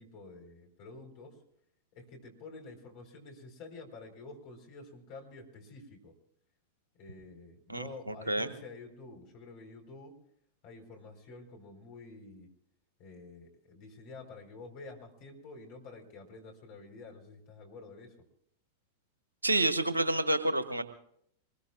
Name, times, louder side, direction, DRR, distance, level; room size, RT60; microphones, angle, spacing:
voice 1, 0.0-1.4 1.9-6.1 7.0-10.2 10.6-12.5 13.0-18.3, left 3 dB, 45° left, 2 dB, 4.5 m, -49 dB
voice 2, 7.7-8.5 19.4-20.8, right 1 dB, 80° right, 10 dB, 1.3 m, -29 dB
25.0 x 21.0 x 2.5 m, 0.69 s
figure-of-eight pair, 90°, 0 cm